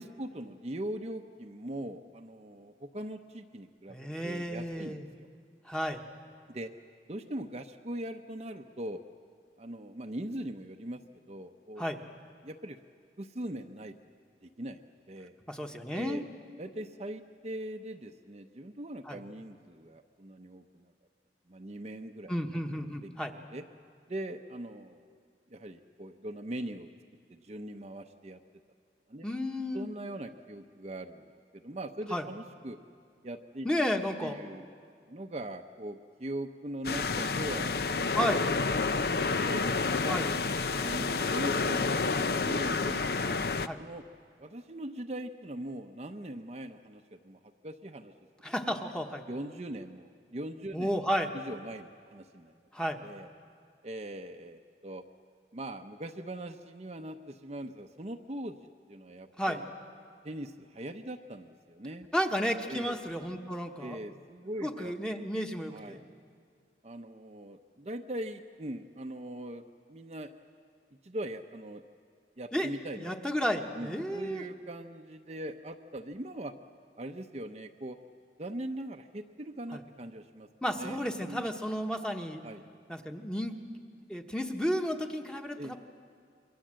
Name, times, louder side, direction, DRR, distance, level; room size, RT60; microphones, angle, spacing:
voice 1, 0.0-5.3 6.5-6.7 7.1-9.0 9.6-11.0 11.3-12.0 12.4-12.8 13.2-13.9 14.4-15.4 15.9-16.2 16.6-20.9 21.5-22.3 22.8-23.1 23.5-23.6 24.1-25.2 25.5-26.9 27.3-28.4 29.1-29.3 29.7-32.8 33.2-33.7 34.2-34.6 35.1-38.1 38.6-39.6 40.0-40.2 40.8-44.0 44.4-48.1 48.7-48.8 49.3-50.9 51.3-52.6 53.0-53.3 53.8-55.0 55.5-58.6 58.9-59.6 60.2-62.1 62.7-63.0 63.8-64.9 65.7-66.1 66.8-69.6 69.9-70.3 71.0-71.8 72.4-73.1 73.7-76.5 77.0-78.0 78.4-80.5 80.8-81.5 82.4-82.6 85.6-85.8, right 1 dB, 35° right, 4 dB, 0.7 m, -41 dB
voice 2, 3.9-5.1 5.6-6.0 11.8-12.0 15.5-16.2 19.0-19.2 22.3-23.3 29.2-29.9 32.1-32.3 33.6-34.4 38.1-38.5 40.1-40.3 43.6-43.8 48.4-49.2 50.7-51.3 52.7-53.0 59.4-59.6 62.1-64.0 64.6-66.0 72.5-72.7 73.0-74.4 79.7-79.8 80.6-82.4 82.9-83.6 84.1-85.8, equal, 5° left, 3 dB, 1.2 m, -32 dB
sound 1, 36.8-43.7, left 4 dB, 60° left, 0.6 m, -29 dB
28.0 x 22.5 x 7.6 m, 2.2 s
head